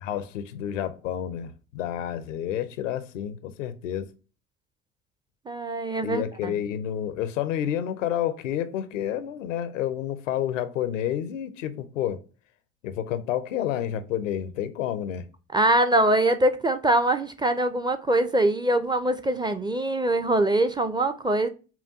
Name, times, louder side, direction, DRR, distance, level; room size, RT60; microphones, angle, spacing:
voice 1, 0.0-4.1 6.0-12.2 12.8-15.3, left 10 dB, 85° left, 0.6 m, -29 dB
voice 2, 5.5-6.5 15.5-21.5, right 1 dB, 10° right, 0.4 m, -23 dB
5.7 x 2.2 x 2.6 m
hypercardioid pair, 60°, 37 cm